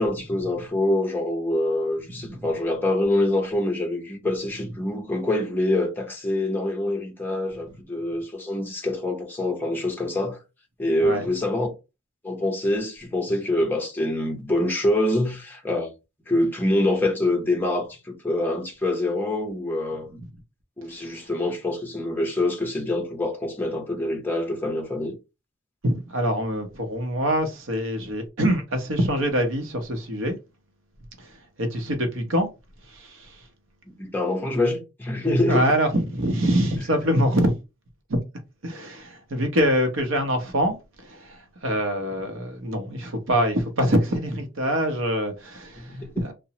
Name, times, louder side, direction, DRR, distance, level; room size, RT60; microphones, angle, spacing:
voice 1, 0.0-10.4 10.8-11.7 12.2-15.9 16.3-20.2 20.8-25.2 34.0-35.7 45.8-46.2, left 1 dB, 10° left, 0.6 m, -25 dB
voice 2, 25.8-30.4 31.2-32.5 32.8-33.5 35.5-37.6 38.1-38.2 38.6-46.3, equal, 65° right, 0.7 m, -25 dB
2.9 x 2.0 x 2.8 m
head